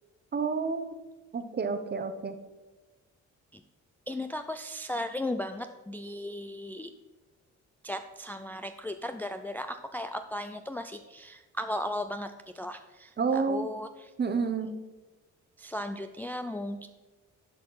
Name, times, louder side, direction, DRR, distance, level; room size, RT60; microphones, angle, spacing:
voice 1, 0.3-0.9 1.3-2.3 13.2-13.7 14.2-14.7, right 5 dB, 35° right, 8 dB, 0.9 m, -29 dB
voice 2, 4.1-6.9 7.8-14.1 15.6-16.9, left 1 dB, 5° left, 7 dB, 0.3 m, -36 dB
11.0 x 4.3 x 5.5 m, 1.2 s
cardioid pair, 90°, 30 cm